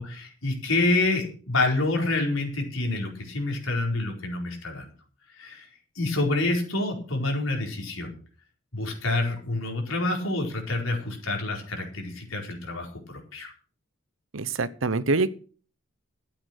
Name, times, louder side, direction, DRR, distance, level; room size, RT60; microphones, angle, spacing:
voice 1, 0.0-4.9 5.4-5.7 5.9-8.1 8.7-13.5, left 2 dB, 85° left, 1 dB, 4.7 m, -27 dB
voice 2, 14.3-15.3, right 3 dB, 75° right, 16 dB, 0.9 m, -25 dB
13.0 x 8.8 x 6.6 m, 0.40 s
head